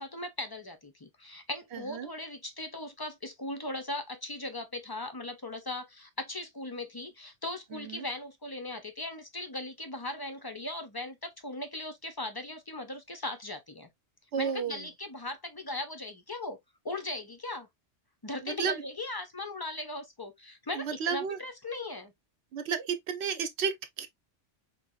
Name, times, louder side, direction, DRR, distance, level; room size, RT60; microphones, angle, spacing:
voice 1, 0.0-13.9 14.4-16.6 16.8-17.7 18.2-22.1, left 2 dB, 35° left, 0.3 m, -38 dB
voice 2, 1.7-2.1 7.7-8.0 14.3-14.8 18.4-18.8 20.7-21.4 22.5-24.1, right 6 dB, 70° right, 0.9 m, -32 dB
4.5 x 2.6 x 2.3 m
omnidirectional pair, 1.2 m